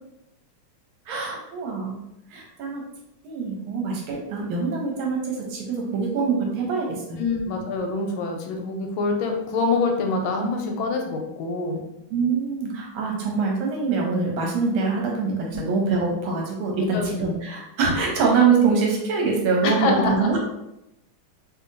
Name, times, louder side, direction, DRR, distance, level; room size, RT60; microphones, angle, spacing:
voice 1, 1.1-2.0 2.3-2.8 3.2-7.2 12.1-20.4, right 4 dB, 80° right, 0 dB, 1.6 m, -24 dB
voice 2, 7.2-11.8 15.5-15.6 16.9-17.1 19.6-20.3, left 3 dB, 80° left, 2 dB, 1.3 m, -25 dB
3.2 x 2.7 x 2.6 m, 0.86 s
omnidirectional pair, 2.3 m